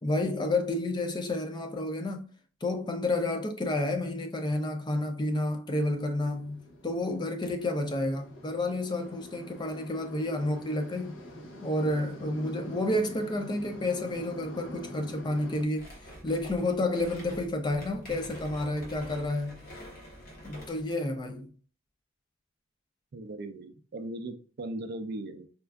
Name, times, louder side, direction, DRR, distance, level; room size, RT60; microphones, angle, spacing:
voice 1, 0.0-2.3 2.6-11.2 11.6-15.9 16.2-19.6 20.4-21.5, left 1 dB, 20° left, 0.4 m, -30 dB
sound 1, 5.8-15.6, equal, 75° left, 0.8 m, -46 dB
sound 2, 15.7-20.9, equal, 50° left, 1.1 m, -46 dB
voice 2, 23.1-25.5, right 1 dB, 50° right, 0.4 m, -38 dB
4.2 x 2.3 x 2.3 m
head